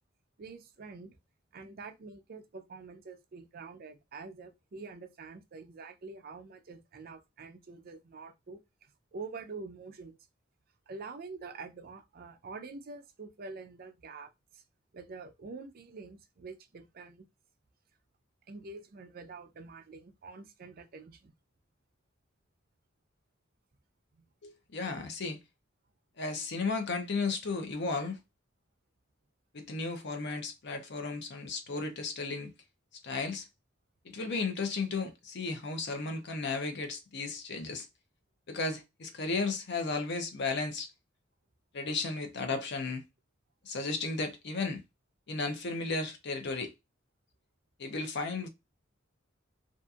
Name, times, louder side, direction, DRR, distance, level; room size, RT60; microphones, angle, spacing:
voice 1, 0.4-1.1 1.5-8.6 9.1-10.2 10.9-14.6 14.9-17.3 18.5-21.3, right 4 dB, 50° right, 0.5 m, -46 dB
voice 2, 24.4-25.4 26.2-28.2 29.5-32.5 33.0-33.5 34.0-37.9 38.5-40.9 41.7-43.0 43.6-44.8 45.3-46.7 47.8-48.5, left 3 dB, 55° left, 0.6 m, -34 dB
2.7 x 2.5 x 2.3 m
head